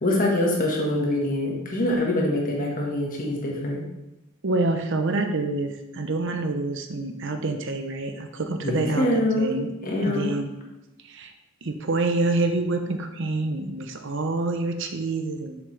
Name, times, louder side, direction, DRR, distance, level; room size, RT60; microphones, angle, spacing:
voice 1, 0.0-3.8 8.6-9.5 9.8-10.3, left 1 dB, 40° left, -1 dB, 1.6 m, -24 dB
voice 2, 4.4-9.1 9.4-9.7 10.0-10.5 11.0-11.3 11.6-15.6, right 2 dB, 55° right, 6 dB, 0.7 m, -27 dB
7.3 x 6.6 x 3.3 m, 0.94 s
head